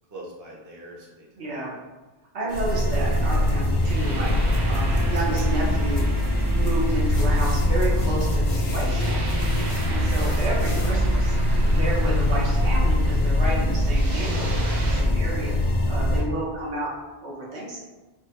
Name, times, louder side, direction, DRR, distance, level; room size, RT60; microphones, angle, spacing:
voice 1, 0.1-1.4 1.7-1.8 3.3-3.4 16.1-16.3, right 1 dB, 25° right, -3 dB, 0.4 m, -44 dB
voice 2, 1.4-1.7 2.3-6.0 6.5-11.4 11.6-15.5 15.9-16.9 17.2-17.8, right 1 dB, 80° right, -5 dB, 1.2 m, -31 dB
sound 1, 2.5-10.9, left 1 dB, 90° left, 0.9 m, -38 dB
sound 2, 2.5-16.2, left 1 dB, 50° left, 0.6 m, -22 dB
sound 3, 2.8-15.0, right 2 dB, 60° right, 0.9 m, -37 dB
3.2 x 2.2 x 3.0 m, 1.2 s
omnidirectional pair, 1.1 m